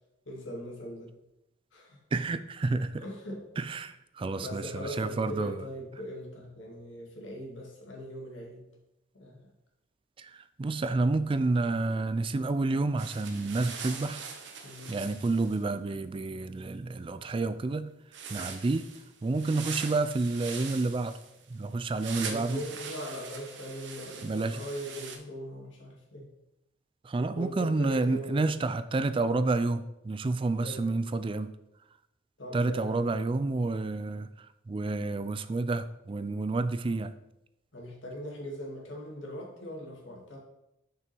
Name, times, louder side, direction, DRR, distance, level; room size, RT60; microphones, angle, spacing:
voice 1, 0.3-1.1 1.7-2.0 3.0-3.4 4.4-8.6 9.1-9.5 14.6-15.0 22.2-26.3 27.3-28.4 30.6-30.9 32.4-33.1 37.7-40.4, equal, 90° left, -1 dB, 2.2 m, -40 dB
voice 2, 2.1-3.0 3.6-5.5 10.2-14.2 14.9-17.9 18.3-18.9 19.2-21.2 21.5-22.6 24.2-24.6 27.0-31.5 32.5-37.1, right 3 dB, 30° right, 13 dB, 0.3 m, -29 dB
sound 1, 13.0-15.6 18.1-25.2, right 6 dB, 70° right, 0.9 m, -42 dB
6.3 x 5.9 x 4.5 m, 0.87 s
head